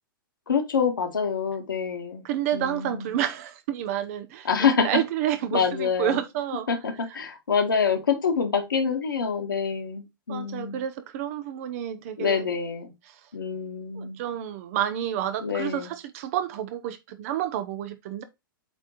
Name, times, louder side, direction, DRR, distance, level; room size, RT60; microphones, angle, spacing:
voice 1, 0.5-2.3 2.5-3.1 4.5-4.9 5.5-6.2 6.7-10.8 12.2-12.9 13.3-14.2 15.4-15.9, left 6 dB, 70° left, 2.0 m, -26 dB
voice 2, 2.2-6.7 10.3-12.5 13.1-13.2 13.9-18.2, right 11 dB, 40° right, 1.1 m, -30 dB
8.1 x 3.8 x 4.1 m
figure-of-eight pair, 105°, 12 cm